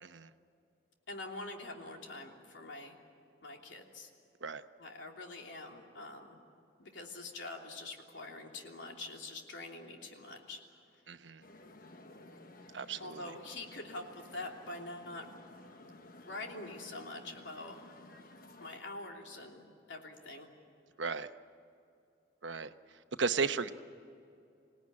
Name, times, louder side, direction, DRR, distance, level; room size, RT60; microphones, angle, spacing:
voice 1, 1.1-3.0 3.4-4.1 4.8-6.4 6.8-10.8 13.0-15.2 16.2-17.8 18.6-20.5, left 2 dB, 90° left, 2 dB, 3.1 m, -45 dB
voice 2, 11.1-11.4 12.7-13.2 21.0-21.3 22.4-22.7 23.2-23.7, right 5 dB, 85° right, 10 dB, 1.0 m, -34 dB
sound 1, 11.4-18.8, left 2 dB, 50° left, 1.3 m, -54 dB
27.0 x 18.0 x 9.8 m, 2.6 s
head